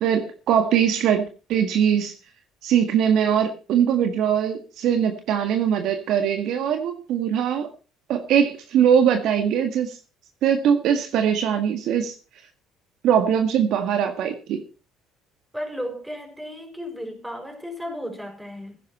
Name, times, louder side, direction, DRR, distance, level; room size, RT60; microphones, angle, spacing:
voice 1, 0.0-2.1 2.6-7.7 8.1-10.0 10.4-12.1 13.0-14.6, right 8 dB, 70° right, 1.8 m, -21 dB
voice 2, 15.5-18.8, equal, 5° right, 5.9 m, -34 dB
15.5 x 11.0 x 4.3 m
supercardioid pair, 75°, 0 cm